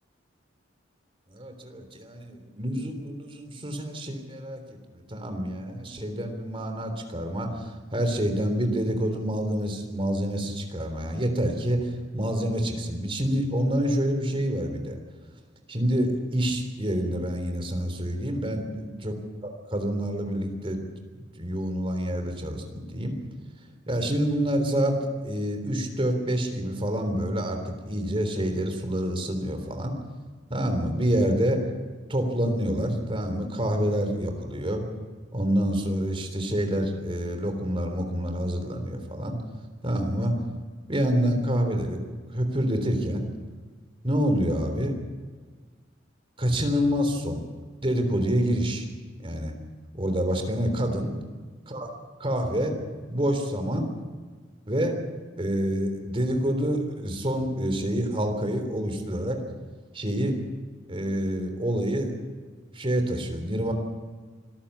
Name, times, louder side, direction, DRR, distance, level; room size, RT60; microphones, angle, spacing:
voice 1, 1.3-15.0 15.7-19.1 19.4-20.8 21.3-23.1 23.9-24.9 25.2-29.9 30.5-31.6 32.1-34.8 35.3-39.4 39.8-40.4 40.9-42.0 42.3-43.3 44.0-44.9 46.4-47.4 47.8-48.9 49.2-49.5 49.9-51.1 51.7-51.9 52.2-52.7 53.1-53.9 54.7-55.0 55.4-59.4 59.9-60.4 60.9-62.1 62.7-63.7, equal, 30° right, 5 dB, 3.5 m, -27 dB
25.0 x 14.0 x 8.6 m, 1.5 s
head